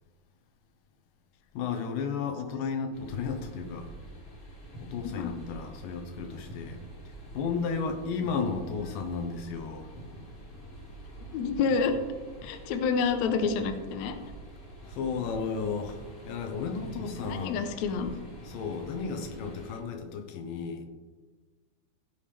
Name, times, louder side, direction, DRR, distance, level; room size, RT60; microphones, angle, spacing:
voice 1, 1.5-3.9 4.8-6.8 7.3-9.9 14.9-17.6 18.4-20.9, left 5 dB, 90° left, 6 dB, 2.7 m, -33 dB
sound 1, 2.9-19.8, right 1 dB, 30° left, 2.1 m, -46 dB
voice 2, 11.2-11.9 12.4-14.2 17.3-18.1, left 5 dB, 70° left, 7 dB, 1.9 m, -28 dB
16.0 x 7.2 x 3.4 m, 1.3 s
omnidirectional pair, 3.7 m